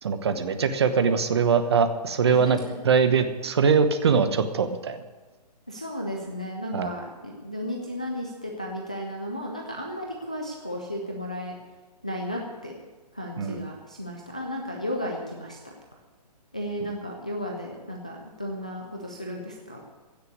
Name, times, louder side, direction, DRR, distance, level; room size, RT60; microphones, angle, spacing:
voice 1, 0.0-2.6 2.8-5.0 6.7-6.9 13.4-13.6, right 6 dB, 40° right, 10 dB, 1.0 m, -22 dB
voice 2, 2.3-2.7 5.7-11.6 12.0-12.8 13.1-15.7 16.5-19.8, equal, 10° left, 0 dB, 0.3 m, -34 dB
16.0 x 6.7 x 9.4 m, 1.3 s
hypercardioid pair, 175°, 21 cm